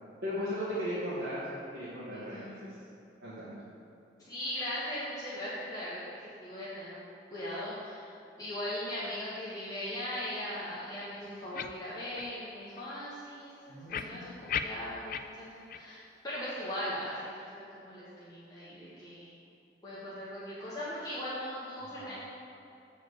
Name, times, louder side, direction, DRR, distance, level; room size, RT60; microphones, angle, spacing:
voice 1, 0.2-2.8 3.2-3.5 13.7-14.4 21.8-22.2, equal, 80° right, -12 dB, 2.1 m, -37 dB
voice 2, 2.1-2.8 4.2-7.0 7.3-19.3 19.8-22.2, left 1 dB, 20° left, -11 dB, 1.5 m, -39 dB
sound 1, 11.5-11.7 12.1-12.3 12.8-12.9 13.9-15.2 15.7-15.8 16.3-16.4, left 8 dB, 50° left, 0.3 m, -35 dB
8.0 x 4.9 x 6.7 m, 2.6 s
head